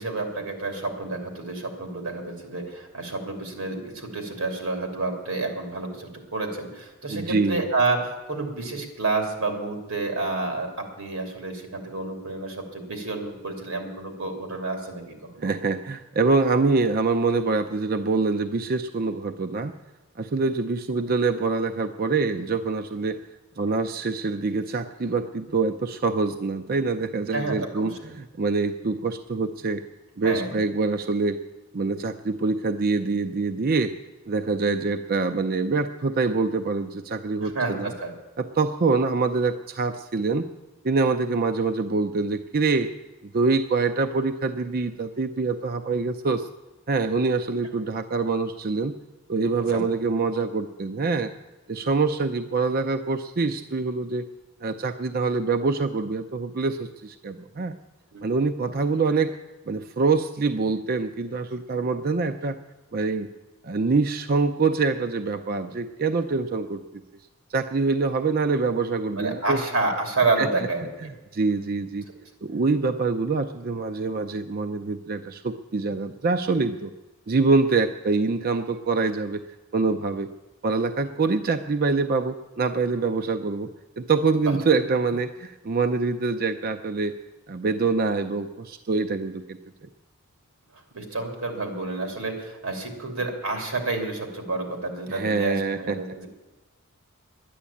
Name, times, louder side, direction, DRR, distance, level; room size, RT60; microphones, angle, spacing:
voice 1, 0.0-15.5 20.4-20.5 27.3-28.1 30.2-30.6 37.4-38.1 49.7-49.8 58.1-58.2 69.2-71.1 84.4-84.5 90.9-96.3, right 3 dB, 90° right, 3 dB, 2.9 m, -29 dB
voice 2, 7.1-7.7 15.4-19.7 20.2-23.2 23.6-29.8 30.2-31.4 31.7-33.9 34.3-37.9 38.4-40.5 40.8-42.9 43.3-46.5 46.9-48.9 49.3-51.3 51.7-54.2 54.6-57.7 58.2-59.3 59.7-62.6 62.9-63.3 63.6-67.0 67.5-69.6 70.4-70.7 71.0-72.0 72.4-76.9 77.3-79.4 79.7-80.3 80.6-83.7 84.0-87.2 87.5-89.6 95.1-96.0, right 4 dB, 45° right, 8 dB, 0.5 m, -25 dB
11.5 x 10.0 x 8.4 m, 1.1 s
head